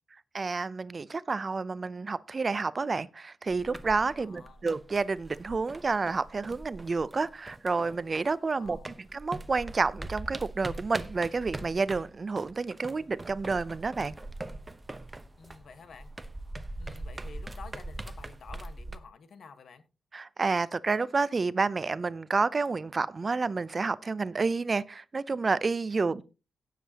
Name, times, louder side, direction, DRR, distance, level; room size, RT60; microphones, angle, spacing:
voice 1, 0.3-8.8 9.1-14.2 20.1-26.2, right 4 dB, 35° right, 0.5 m, -29 dB
sound 1, 3.5-8.4 8.6-19.0, right 2 dB, 20° right, 0.9 m, -42 dB
voice 2, 4.2-4.7 8.6-9.0 15.4-16.1 16.8-19.8 26.1-26.2, left 5 dB, 65° left, 1.3 m, -50 dB
17.0 x 7.5 x 2.9 m
cardioid pair, 105°, 0 cm